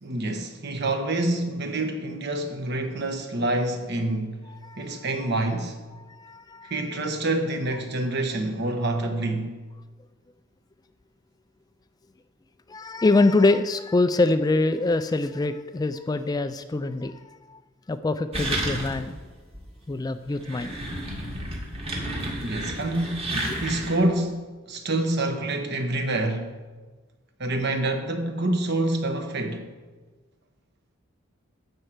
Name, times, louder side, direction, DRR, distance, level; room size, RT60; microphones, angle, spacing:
voice 1, 0.0-4.4 4.8-5.8 6.7-9.5 22.4-23.3 23.6-26.5 27.4-29.7, right 2 dB, 55° right, 1.2 m, -27 dB
voice 2, 4.6-5.3 5.9-6.9 12.7-17.6 17.9-19.2 19.9-20.8 23.5-23.6, left 2 dB, 20° left, 0.3 m, -25 dB
sound 1, 18.3-19.2 19.5-19.6 20.3-24.1, right 1 dB, 30° right, 1.7 m, -31 dB
12.0 x 4.5 x 7.9 m
head